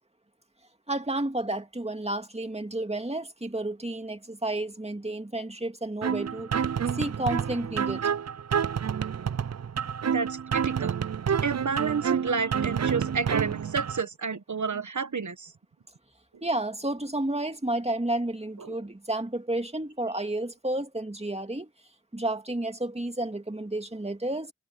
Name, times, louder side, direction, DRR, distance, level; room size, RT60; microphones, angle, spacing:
voice 1, 0.9-6.5 6.9-8.0 16.4-21.7 22.1-24.5, right 1 dB, 20° right, 2.2 m, -31 dB
sound 1, 6.0-14.0, right 7 dB, 60° right, 0.5 m, -29 dB
voice 2, 10.0-10.9 11.4-15.5 18.6-18.8, right 5 dB, 85° right, 1.2 m, -30 dB
wide cardioid pair, 45°, 29 cm